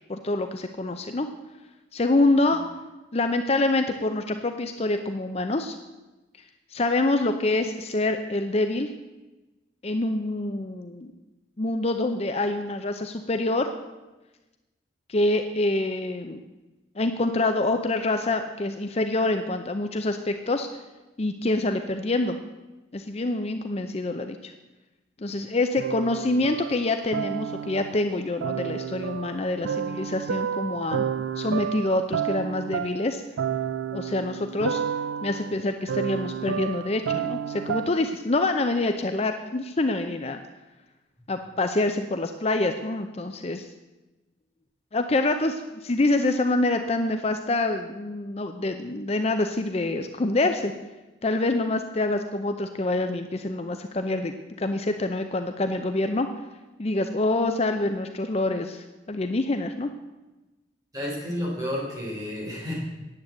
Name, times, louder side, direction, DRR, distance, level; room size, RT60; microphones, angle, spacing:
voice 1, 0.1-1.3 1.9-2.6 3.1-5.7 6.7-8.9 9.8-11.1 11.6-13.8 15.1-16.4 17.0-20.7 21.2-22.4 22.9-24.5 25.2-31.0 31.4-33.2 33.9-34.8 35.2-40.4 41.3-43.7 44.9-50.7 51.2-56.3 56.8-59.9, left 2 dB, 35° left, 7 dB, 0.6 m, -26 dB
sound 1, 25.8-28.0 28.4-38.1, right 8 dB, 85° right, 0.4 m, -31 dB
voice 2, 60.9-62.8, left 1 dB, 20° right, -4 dB, 3.7 m, -31 dB
9.6 x 8.5 x 7.8 m, 1.1 s
head